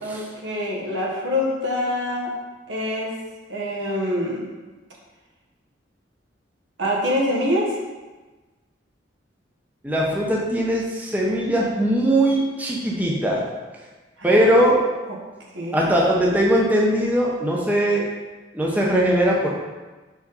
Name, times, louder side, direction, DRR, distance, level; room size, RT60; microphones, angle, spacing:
voice 1, 0.0-2.3 2.7-3.1 3.5-4.5 6.8-7.7 14.2-14.5 15.5-16.1, left 1 dB, 75° right, -2 dB, 1.3 m, -25 dB
voice 2, 9.8-13.4 14.2-14.8 15.7-18.1 18.5-19.5, right 1 dB, 10° right, -3 dB, 0.7 m, -20 dB
4.8 x 4.1 x 5.4 m, 1.2 s
head